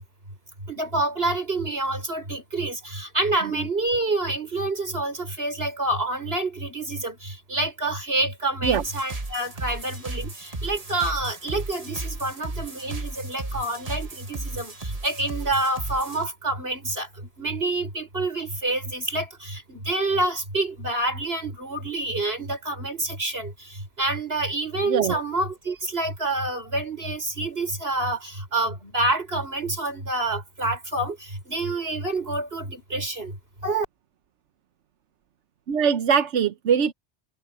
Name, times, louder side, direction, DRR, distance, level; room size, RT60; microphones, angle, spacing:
voice 1, 0.7-17.1 17.4-23.5 24.0-31.2 31.5-33.3 33.6-33.9, right 2 dB, 60° right, 6.2 m, -27 dB
sound 1, 8.6-16.2, right 2 dB, 35° right, 1.6 m, -35 dB
voice 2, 24.9-25.2 35.7-36.9, right 7 dB, 90° right, 1.2 m, -22 dB
omnidirectional pair, 1.2 m